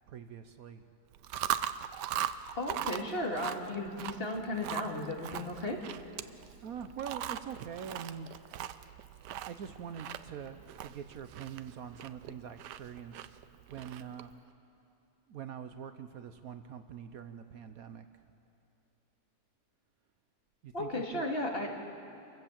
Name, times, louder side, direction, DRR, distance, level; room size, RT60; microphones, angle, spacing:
voice 1, 0.1-0.8 6.6-8.3 9.4-13.3 13.7-14.3 15.3-18.0 20.6-21.3, right 8 dB, 65° right, 9 dB, 1.2 m, -44 dB
Chewing mastication, 1.1-14.3, right 11 dB, 90° right, 1.3 m, -40 dB
voice 2, 2.5-5.8 20.7-21.8, left 1 dB, 35° left, 1 dB, 2.4 m, -35 dB
28.0 x 16.0 x 7.3 m, 2.7 s
omnidirectional pair, 1.8 m